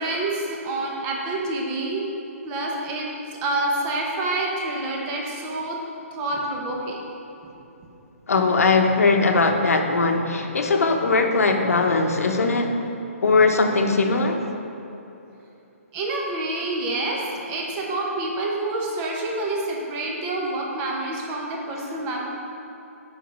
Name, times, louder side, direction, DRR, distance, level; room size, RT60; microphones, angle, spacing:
voice 1, 0.0-2.0 2.4-3.1 3.4-5.8 6.1-7.0 10.8-10.9 12.8-12.9 15.9-17.2 17.5-22.2, right 2 dB, 25° right, -2 dB, 1.2 m, -27 dB
voice 2, 8.3-12.8 13.2-14.4, left 3 dB, 85° left, 4 dB, 1.0 m, -20 dB
8.0 x 5.9 x 5.3 m, 2.9 s
hypercardioid pair, 155°, 8 cm